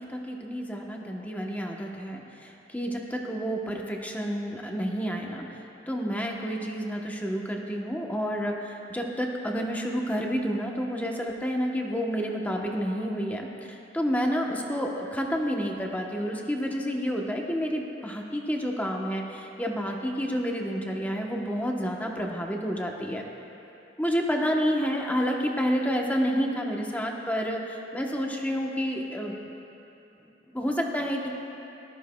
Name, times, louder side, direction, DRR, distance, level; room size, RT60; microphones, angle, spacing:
voice 1, 0.0-5.6 5.9-23.2 24.0-29.5 30.5-31.3, equal, 10° left, 0 dB, 0.9 m, -29 dB
19.0 x 12.5 x 2.3 m, 2.9 s
head